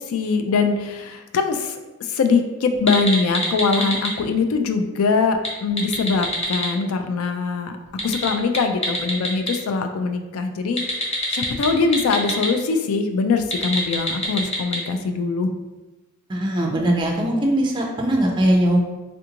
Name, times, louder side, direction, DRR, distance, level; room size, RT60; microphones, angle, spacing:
voice 1, 0.0-7.8 8.0-10.8 11.3-15.5, left 4 dB, 85° left, 7 dB, 0.4 m, -22 dB
sound 1, 2.7-4.1 5.3-6.7 7.9-9.5 10.8-12.5 13.4-14.8, left 1 dB, 30° left, 0.6 m, -25 dB
voice 2, 16.3-18.8, right 1 dB, 20° right, 0 dB, 0.4 m, -20 dB
3.4 x 2.5 x 2.8 m, 1.1 s
head